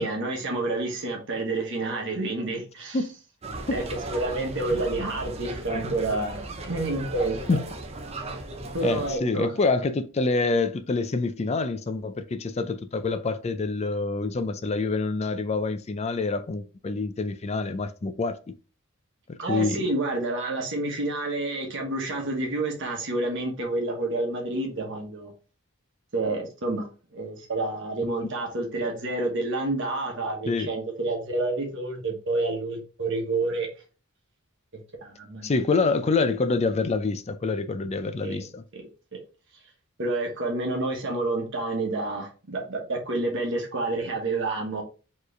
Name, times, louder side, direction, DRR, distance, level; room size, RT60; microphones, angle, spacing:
voice 1, 0.0-3.0 3.7-7.4 8.7-9.5 19.4-25.3 26.1-26.9 27.1-33.7 35.0-35.5 38.2-38.4 38.7-39.2 40.0-44.8, right 2 dB, 60° right, 1.2 m, -29 dB
sound 1, 3.4-9.2, right 2 dB, 30° right, 0.7 m, -37 dB
voice 2, 8.8-18.5 19.3-19.8 30.5-30.7 35.4-38.6, left 3 dB, 30° left, 0.4 m, -26 dB
4.6 x 3.1 x 3.2 m
head